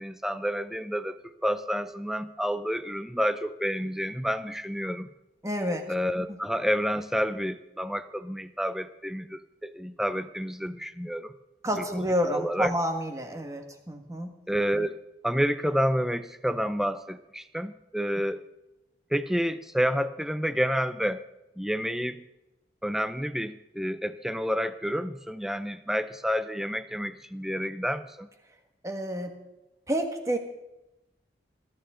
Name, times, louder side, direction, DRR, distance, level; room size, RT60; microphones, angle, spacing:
voice 1, 0.0-5.1 5.9-11.3 11.8-12.7 14.5-15.0 15.2-18.4 19.1-21.2 21.6-22.2 22.8-28.3, equal, ahead, 11 dB, 0.6 m, -29 dB
voice 2, 5.4-5.8 11.6-14.3 28.8-29.3 29.9-30.4, equal, 20° right, 5 dB, 1.7 m, -29 dB
21.0 x 12.0 x 3.9 m, 0.93 s
head